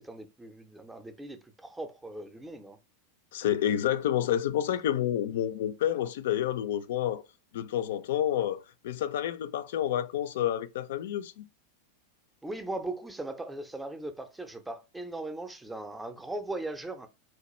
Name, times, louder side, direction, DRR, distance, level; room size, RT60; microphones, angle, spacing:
voice 1, 0.0-2.8 12.4-17.1, right 2 dB, 5° right, 0.5 m, -39 dB
voice 2, 3.3-7.2 7.5-11.4, left 11 dB, 55° left, 0.4 m, -29 dB
4.3 x 2.3 x 3.0 m
figure-of-eight pair, 90°, 0 cm